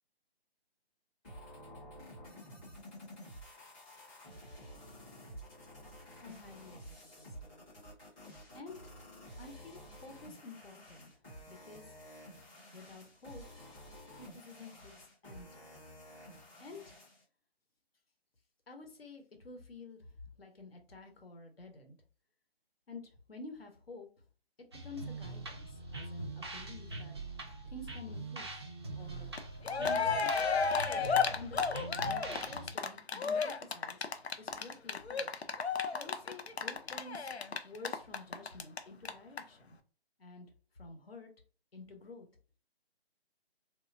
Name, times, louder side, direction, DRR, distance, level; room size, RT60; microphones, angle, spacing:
sound 1, 1.2-17.2, equal, 10° left, 0.7 m, -52 dB
voice 1, 6.2-7.6 8.5-8.8 9.4-11.1 11.5-12.0 12.7-13.4 14.1-15.7 16.6-16.8 18.7-20.1 20.4-22.0 22.9-24.1 24.8-27.1 27.6-28.7 28.9-29.3 29.7-30.7 31.3-31.6 32.0-34.0 34.4-35.3 35.9-37.3 37.6-39.8 40.2-40.5 40.7-41.3 41.7-42.3, left 2 dB, 70° left, 4 dB, 1.0 m, -50 dB
sound 2, 24.7-32.7, right 2 dB, 25° right, 0.4 m, -43 dB
Cheering, 29.4-29.5 29.6-38.8 39.0-39.1 39.4-39.5, left 5 dB, 85° left, 0.6 m, -32 dB
3.2 x 2.6 x 2.5 m, 0.38 s
figure-of-eight pair, 145°, 31 cm